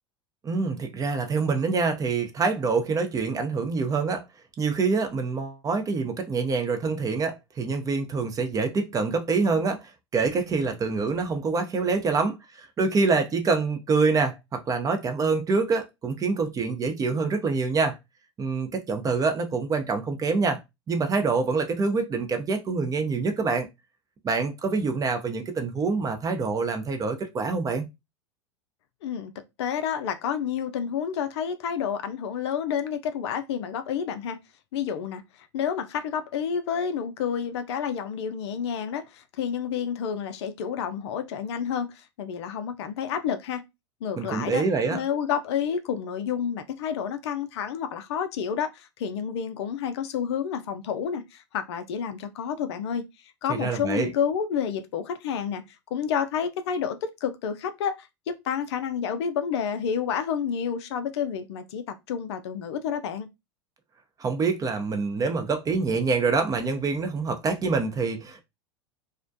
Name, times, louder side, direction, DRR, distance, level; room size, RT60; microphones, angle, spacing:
voice 1, 0.4-4.2 4.6-18.0 18.4-20.6 20.9-23.7 24.2-27.8 44.2-45.0 53.5-54.1 64.2-68.4, right 4 dB, 25° right, 0.5 m, -26 dB
voice 2, 29.0-29.3 29.6-34.4 34.7-43.6 44.0-44.6 44.9-53.0 53.4-63.3, left 7 dB, 70° left, 0.4 m, -29 dB
2.4 x 2.1 x 2.5 m
hypercardioid pair, 90°, 15 cm